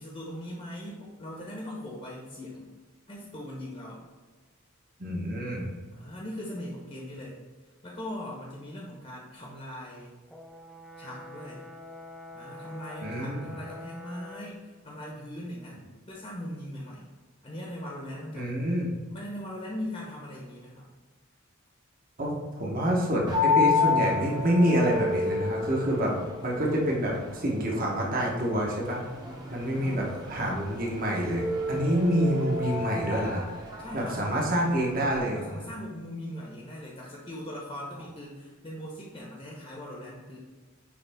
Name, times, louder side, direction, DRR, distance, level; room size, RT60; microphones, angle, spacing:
voice 1, 0.0-2.7 3.1-4.0 5.9-7.4 7.8-10.2 11.0-11.7 12.3-17.1 17.4-18.6 19.1-20.9 29.7-30.3 33.8-34.7 35.3-40.4, left 1 dB, 30° left, -3 dB, 1.0 m, -40 dB
voice 2, 5.0-5.7 13.0-13.5 18.3-18.9 22.2-26.1 26.4-29.0 29.5-33.4 33.7-35.6, equal, 40° right, -2 dB, 1.1 m, -27 dB
Brass instrument, 10.3-14.5, left 2 dB, ahead, 0.4 m, -45 dB
sound 1, 23.3-35.2, left 4 dB, 20° right, 0.9 m, -31 dB
9.7 x 3.3 x 3.5 m, 1.4 s
head